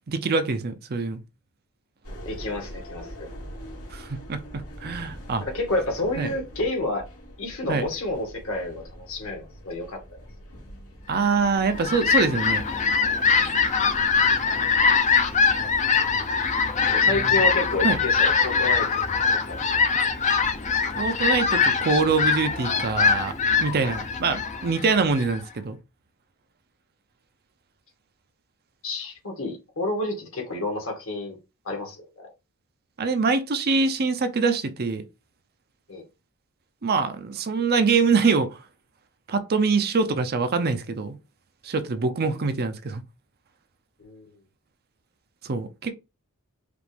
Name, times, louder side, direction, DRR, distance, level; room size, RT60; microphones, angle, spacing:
voice 1, 0.1-1.2 3.9-5.4 6.2-6.3 7.7-7.9 11.1-12.6 17.1-17.3 17.8-18.0 21.0-23.3 23.6-25.8 33.0-35.0 36.8-38.5 39.3-41.2 41.6-43.0 45.4-45.9, right 4 dB, 45° right, 0.5 m, -24 dB
sound 1, 2.0-21.9, equal, 90° left, 2.3 m, -45 dB
voice 2, 2.3-3.3 5.4-7.1 7.4-10.0 16.9-19.1 19.3-19.6 28.8-31.4 31.7-32.3 35.9-36.0 44.0-44.3, left 2 dB, 65° left, 1.8 m, -30 dB
Fowl, 11.5-25.4, left 5 dB, 35° left, 0.6 m, -22 dB
5.0 x 2.5 x 3.4 m
head